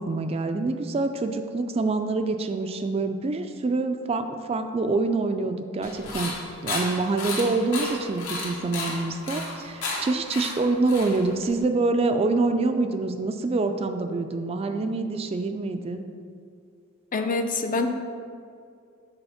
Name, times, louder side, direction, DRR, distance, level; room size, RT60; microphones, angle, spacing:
voice 1, 0.0-6.4 6.6-16.0, right 3 dB, 30° right, 7 dB, 0.3 m, -26 dB
sound 1, 5.8-11.6, left 2 dB, 75° left, 1.4 m, -33 dB
voice 2, 17.1-17.9, left 3 dB, 40° left, 6 dB, 0.5 m, -25 dB
6.8 x 4.0 x 5.6 m, 2.3 s
head